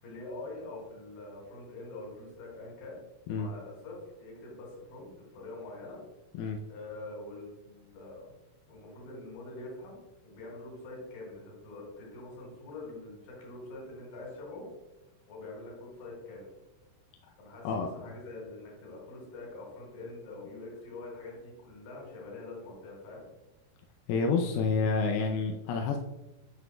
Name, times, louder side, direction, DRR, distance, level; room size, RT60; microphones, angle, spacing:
voice 1, 0.0-3.0 3.3-6.0 6.7-8.3 8.7-14.7 15.3-16.5 17.4-23.2, left 2 dB, 65° left, -4 dB, 3.8 m, -45 dB
voice 2, 17.6-18.2 24.1-26.0, left 4 dB, 85° left, 2 dB, 2.5 m, -29 dB
9.8 x 7.0 x 2.2 m, 1.0 s
omnidirectional pair, 4.4 m